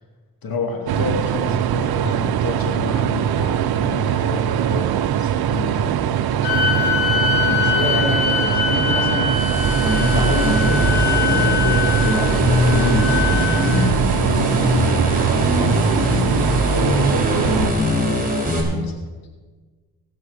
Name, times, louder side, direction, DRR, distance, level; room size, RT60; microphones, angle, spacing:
voice 1, 0.4-9.3 9.8-15.0 15.5-19.0, left 4 dB, 70° left, 3 dB, 2.5 m, -29 dB
sound 1, 0.9-17.7, right 10 dB, 80° right, 0.7 m, -22 dB
sound 2, 6.4-13.9, left 7 dB, 90° left, 4.6 m, -23 dB
sound 3, 9.2-18.6, equal, 25° right, 3.9 m, -21 dB
18.0 x 6.2 x 6.5 m, 1.4 s
cardioid pair, 60°, 37 cm